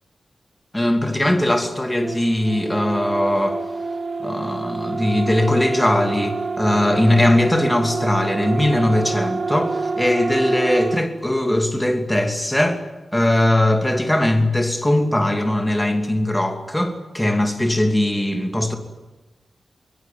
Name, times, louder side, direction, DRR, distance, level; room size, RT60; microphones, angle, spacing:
voice 1, 0.7-3.6 4.2-12.8 13.1-18.8, left 1 dB, 10° left, 2.8 m, -20 dB
sound 1, 2.0-11.1, right 3 dB, 35° right, 1.3 m, -27 dB
24.5 x 23.5 x 9.2 m
wide cardioid pair, 170°, 0 cm